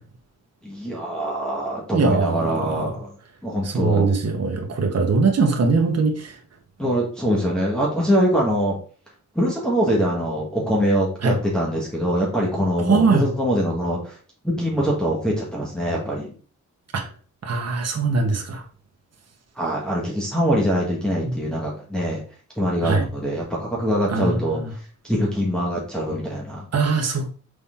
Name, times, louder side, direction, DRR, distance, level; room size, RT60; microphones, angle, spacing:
voice 1, 0.6-3.1 3.4-4.1 6.8-8.8 9.3-14.2 14.6-16.3 19.5-22.2 22.6-24.6 25.0-26.6, equal, 5° left, -5 dB, 1.5 m, -23 dB
voice 2, 1.9-2.8 3.6-6.3 11.2-11.3 12.9-13.3 16.9-17.0 17.4-18.6 21.2-21.3 22.8-23.0 24.1-24.6 26.7-27.4, right 4 dB, 55° right, 2 dB, 1.3 m, -21 dB
6.4 x 4.3 x 3.7 m, 0.40 s
wide cardioid pair, 170°, 30 cm